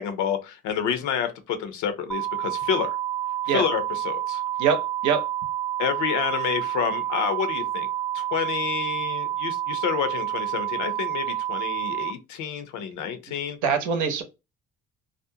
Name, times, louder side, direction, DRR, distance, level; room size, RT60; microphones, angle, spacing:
voice 1, 0.0-3.0 3.5-4.4 5.8-7.9 8.1-13.6, left 8 dB, 70° left, 0.7 m, -29 dB
sound 1, 2.1-12.1, right 12 dB, 5° right, 0.3 m, -29 dB
voice 2, 4.6-5.2 13.6-14.2, right 6 dB, 70° right, 0.7 m, -23 dB
2.5 x 2.1 x 2.7 m
supercardioid pair, 75°, 30 cm